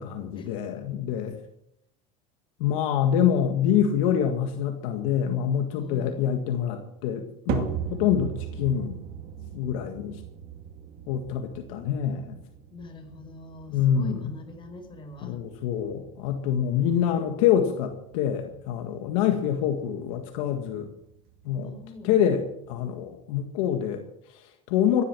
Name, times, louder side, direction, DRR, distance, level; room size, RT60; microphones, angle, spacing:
voice 1, 0.0-1.4 2.6-9.0 9.5-10.2 11.1-12.4 13.7-14.3 15.2-20.9 21.4-21.7 22.0-25.0, left 9 dB, 75° left, 5 dB, 1.8 m, -26 dB
voice 2, 5.8-6.4 12.7-15.4 21.6-22.1, left 2 dB, 30° left, 4 dB, 5.1 m, -43 dB
sound 1, 7.5-23.9, right 9 dB, 60° right, 2.5 m, -40 dB
16.0 x 11.5 x 6.2 m, 0.77 s
supercardioid pair, 105°, 17 cm